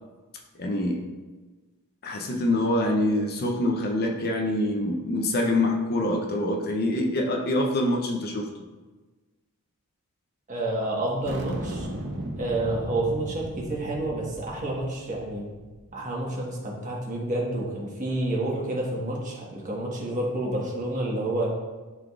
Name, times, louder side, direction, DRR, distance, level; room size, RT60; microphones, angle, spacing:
voice 1, 0.6-1.1 2.0-8.5, left 1 dB, 45° left, 2 dB, 0.6 m, -25 dB
voice 2, 10.5-11.9 12.4-15.5 15.9-21.5, right 1 dB, 35° right, -3 dB, 1.4 m, -29 dB
sound 1, 11.2-15.9, right 1 dB, 55° right, 0.8 m, -37 dB
10.5 x 3.8 x 2.4 m, 1.3 s
head